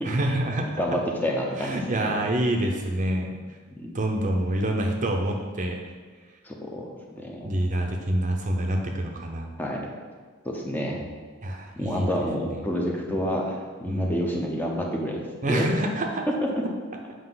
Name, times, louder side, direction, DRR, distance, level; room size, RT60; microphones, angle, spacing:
voice 1, 0.0-0.8 1.5-3.3 3.9-5.8 7.4-9.5 11.4-12.1 12.4-12.6 13.8-14.2 15.4-16.3, right 1 dB, 40° right, 2 dB, 0.7 m, -26 dB
voice 2, 0.8-2.1 3.8-3.9 6.4-6.9 7.2-7.5 9.6-9.9 10.4-11.0 11.8-15.2 15.5-15.7 16.3-16.6, equal, 10° left, -1 dB, 0.8 m, -28 dB
7.7 x 5.1 x 4.0 m, 1.5 s
head